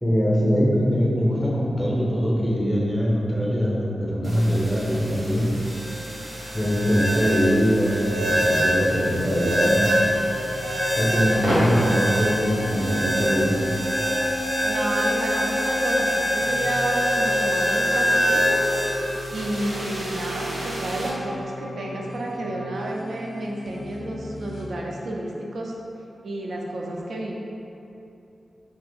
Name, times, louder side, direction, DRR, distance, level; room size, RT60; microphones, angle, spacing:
voice 1, 0.0-5.5 6.5-9.9 11.0-13.6, equal, ahead, -5 dB, 0.5 m, -22 dB
sound 1, 4.2-21.1, equal, 70° right, 0.7 m, -25 dB
sound 2, 8.9-24.7, left 1 dB, 85° left, 0.4 m, -34 dB
voice 2, 14.6-18.6 19.3-25.7 26.2-27.4, right 1 dB, 90° right, -2 dB, 0.3 m, -31 dB
2.7 x 2.4 x 3.4 m, 2.8 s
wide cardioid pair, 140°, 0 cm